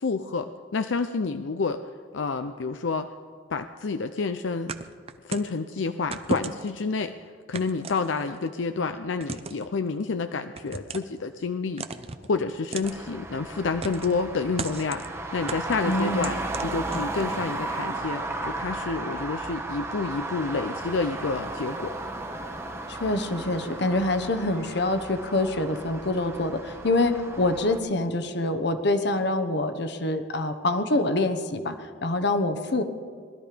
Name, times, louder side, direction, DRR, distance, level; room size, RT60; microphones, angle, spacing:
voice 1, 0.0-1.8 2.1-3.1 3.5-4.7 5.2-7.1 7.5-11.8 12.3-15.0 15.3-16.4 16.6-21.9, left 4 dB, 90° left, 8 dB, 0.6 m, -29 dB
sound 1, 4.7-5.6 6.1-6.8 7.5-8.5 9.2-9.7 10.6-11.2 11.8-12.3 12.7-13.0 13.8-14.2 14.6-15.1 15.5-17.4, right 4 dB, 35° right, 0.7 m, -35 dB
Traffic noise roadway noise, 12.8-27.8, right 2 dB, 15° right, 1.0 m, -34 dB
voice 2, 15.8-16.3 22.9-32.8, left 2 dB, 65° left, 8 dB, 1.1 m, -26 dB
20.0 x 12.5 x 5.1 m, 2.1 s
head